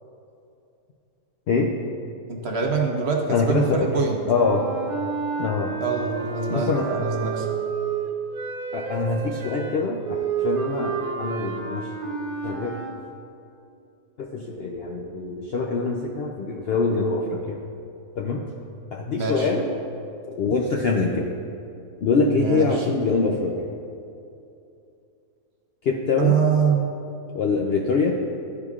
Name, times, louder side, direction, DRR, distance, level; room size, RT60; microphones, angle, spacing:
voice 1, 2.3-4.2 5.8-7.5 19.1-19.5 22.3-22.8 26.2-26.9, right 5 dB, 55° right, 1 dB, 0.8 m, -24 dB
voice 2, 3.3-3.9 4.3-4.6 5.4-5.7 6.5-6.8 8.7-11.9 12.4-12.7 14.2-17.6 18.2-18.4 18.9-19.7 20.4-21.3 22.0-23.5 25.8-26.3 27.3-28.2, left 4 dB, 65° left, -1 dB, 0.6 m, -24 dB
sound 1, 4.3-13.0, right 6 dB, 85° right, 1.2 m, -30 dB
12.0 x 4.8 x 2.4 m, 2.7 s
omnidirectional pair, 1.5 m